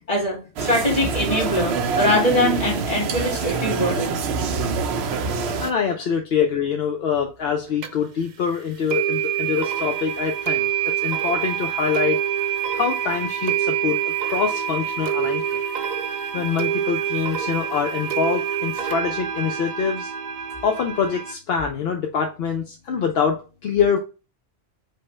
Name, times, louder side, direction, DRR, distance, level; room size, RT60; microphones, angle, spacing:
voice 1, 0.1-4.2, left 1 dB, 35° left, -2 dB, 2.0 m, -22 dB
walla nike headquarters large hall busy dutch english, 0.6-5.7, right 4 dB, 90° right, 0.9 m, -25 dB
voice 2, 5.2-12.2 12.7-15.6 16.3-20.1 20.6-24.0, left 6 dB, 75° left, 4 dB, 0.8 m, -25 dB
sound 1, 7.8-7.9 8.9-21.3, right 9 dB, 55° right, 0.6 m, -26 dB
5.2 x 2.1 x 4.2 m, 0.32 s
omnidirectional pair, 1.1 m